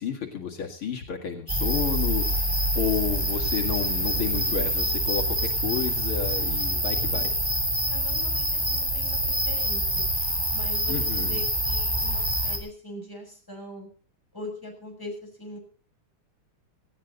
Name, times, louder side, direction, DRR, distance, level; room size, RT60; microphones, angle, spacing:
voice 1, 0.0-2.5 2.7-7.3 10.9-11.4, left 7 dB, 70° left, 1 dB, 3.0 m, -31 dB
sound 1, 1.5-12.6, equal, 10° right, 3.9 m, -26 dB
voice 2, 6.8-7.3 7.9-10.1 10.5-13.9 14.3-15.6, left 1 dB, 10° left, 1 dB, 6.6 m, -41 dB
18.5 x 16.5 x 4.0 m, 0.38 s
omnidirectional pair, 2.4 m